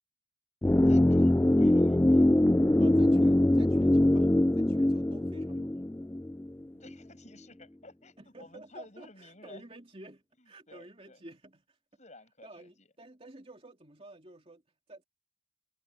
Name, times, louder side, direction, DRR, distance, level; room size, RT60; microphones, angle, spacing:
sound 1, 0.6-6.6 6.9-7.0, left 1 dB, 10° left, 0.3 m, -23 dB
voice 1, 0.8-2.3 6.7-9.6 10.4-11.2 12.0-12.9, left 2 dB, 35° left, 7.2 m, -53 dB
voice 2, 2.8-4.3 4.6-5.9 8.2-11.8 12.4-14.6 14.9-15.0, right 1 dB, 30° right, 3.1 m, -51 dB
head